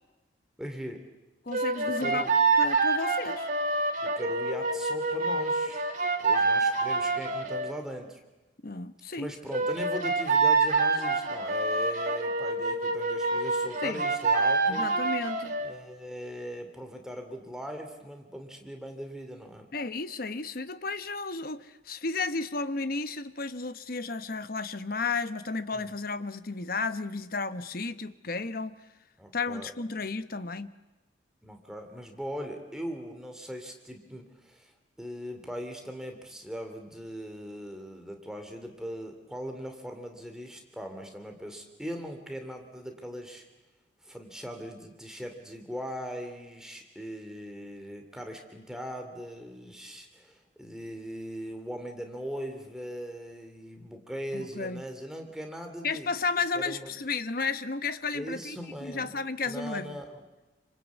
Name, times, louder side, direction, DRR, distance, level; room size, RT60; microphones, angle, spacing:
voice 1, 0.6-1.0 2.0-2.3 4.0-5.8 6.2-8.2 9.2-15.0 15.6-19.7 25.7-25.9 29.2-29.7 31.4-43.4 44.0-56.1 56.5-56.9 58.1-59.2 59.4-60.2, equal, 5° right, 4 dB, 2.7 m, -40 dB
voice 2, 1.5-2.3 2.6-3.5 8.6-9.3 13.8-14.0 14.7-15.6 19.7-28.8 29.3-30.7 54.3-54.8 55.8-60.0, left 4 dB, 50° left, 12 dB, 1.0 m, -33 dB
sound 1, 1.5-7.7 9.5-15.7, right 3 dB, 45° right, 2.8 m, -26 dB
28.0 x 25.5 x 8.3 m, 1.1 s
head